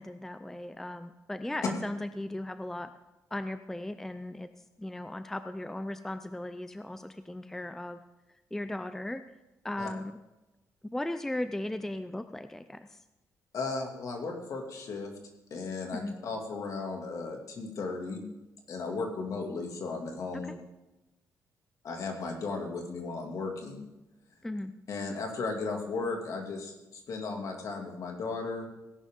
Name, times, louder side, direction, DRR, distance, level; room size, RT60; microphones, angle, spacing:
voice 1, 0.0-2.9 3.3-4.5 4.8-8.0 8.5-9.2 9.6-10.2 10.8-13.0 15.9-16.2 20.4-20.5 24.4-24.7, left 1 dB, 5° left, 10 dB, 0.4 m, -37 dB
voice 2, 13.5-15.1 15.5-18.2 18.7-20.5 21.8-23.8 24.9-28.7, left 3 dB, 60° left, 2 dB, 2.4 m, -35 dB
17.5 x 10.5 x 3.7 m, 1.0 s
cardioid pair, 150°, 6 cm